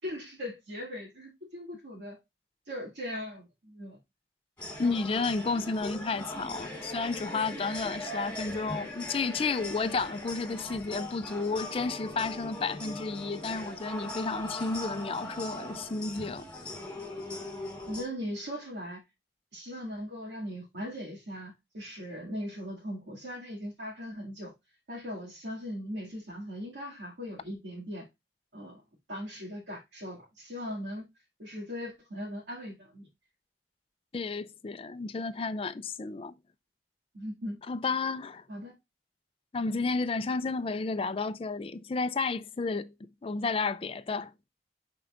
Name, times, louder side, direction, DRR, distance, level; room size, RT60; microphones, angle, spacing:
voice 1, 0.0-2.2 2.7-4.0 17.9-19.0 19.5-24.5 24.9-28.1 28.5-28.8 29.1-31.1 31.4-33.1 37.1-37.6 38.5-38.7, equal, 85° right, 2.3 m, -39 dB
sound 1, 4.6-18.0, left 1 dB, 10° left, 3.5 m, -40 dB
voice 2, 4.8-16.4 34.1-36.3 37.7-38.4 39.5-44.3, left 4 dB, 30° left, 0.4 m, -32 dB
11.0 x 4.5 x 2.5 m
head